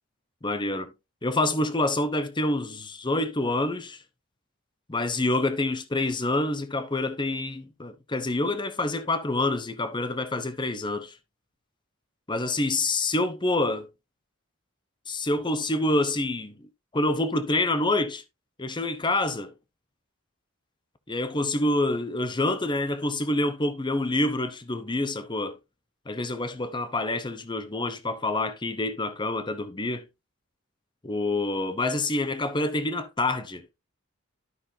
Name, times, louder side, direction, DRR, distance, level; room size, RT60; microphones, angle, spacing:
voice 1, 0.4-0.9 1.2-4.0 4.9-11.2 12.3-13.8 15.1-16.6 16.9-18.2 18.6-19.5 21.1-25.6 26.1-30.0 31.0-33.6, left 2 dB, 20° left, 0.9 m, -27 dB
12.5 x 5.9 x 2.7 m
head